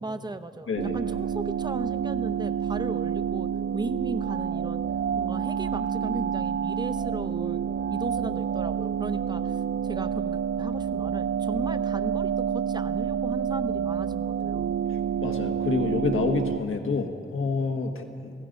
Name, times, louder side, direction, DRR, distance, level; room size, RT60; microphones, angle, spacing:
voice 1, 0.0-4.8 5.2-14.7, right 2 dB, 20° right, 10 dB, 0.7 m, -36 dB
sound 1, 0.8-16.6, right 8 dB, 80° right, 0.4 m, -28 dB
voice 2, 15.2-18.3, left 4 dB, 80° left, 5 dB, 1.5 m, -28 dB
27.5 x 17.5 x 5.3 m, 2.4 s
wide cardioid pair, 165°, 21 cm